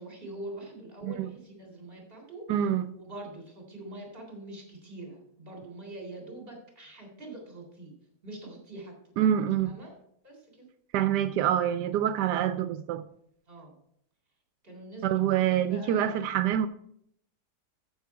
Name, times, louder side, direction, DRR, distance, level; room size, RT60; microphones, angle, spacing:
voice 1, 0.0-2.5 2.9-7.9 8.2-8.9 9.6-9.9 10.2-10.7 13.5-13.8 14.6-15.1 15.5-16.1, right 1 dB, 35° right, 3.6 m, -44 dB
voice 2, 2.5-2.8 9.2-9.8 10.9-13.0 15.0-16.7, right 10 dB, 90° right, 1.2 m, -26 dB
14.0 x 6.3 x 4.7 m
omnidirectional pair, 1.7 m